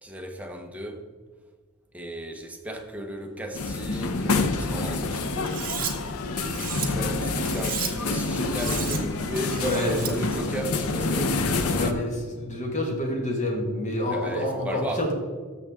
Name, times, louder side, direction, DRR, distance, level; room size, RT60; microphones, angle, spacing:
voice 1, 0.0-1.0 1.9-6.0 6.8-12.0 14.1-15.1, right 1 dB, 5° right, 0.8 m, -35 dB
sound 1, 3.5-11.9, left 3 dB, 75° left, 0.7 m, -27 dB
Cutlery silverware, 5.5-5.9 6.4-6.9 7.4-7.9 8.4-9.0 9.4-10.1, right 8 dB, 40° right, 1.3 m, -33 dB
voice 2, 6.5-6.9 7.4-7.5 9.6-10.2 11.7-15.1, left 1 dB, 35° left, 1.8 m, -28 dB
13.5 x 6.9 x 3.7 m
head